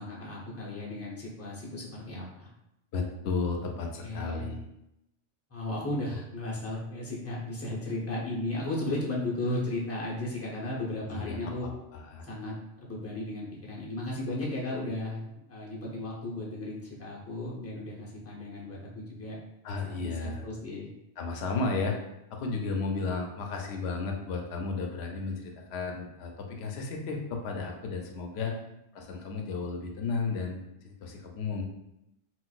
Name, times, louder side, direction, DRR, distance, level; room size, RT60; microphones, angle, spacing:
voice 1, 0.0-2.5 4.0-4.5 5.5-11.7 12.2-19.4 19.8-20.9 28.4-28.6, left 1 dB, 15° left, -5 dB, 0.6 m, -35 dB
voice 2, 2.9-4.7 11.1-12.3 19.6-20.4 21.2-21.9 22.3-28.5 28.9-31.6, left 4 dB, 70° left, 2 dB, 0.8 m, -33 dB
3.9 x 2.3 x 2.4 m, 0.84 s
omnidirectional pair, 1.2 m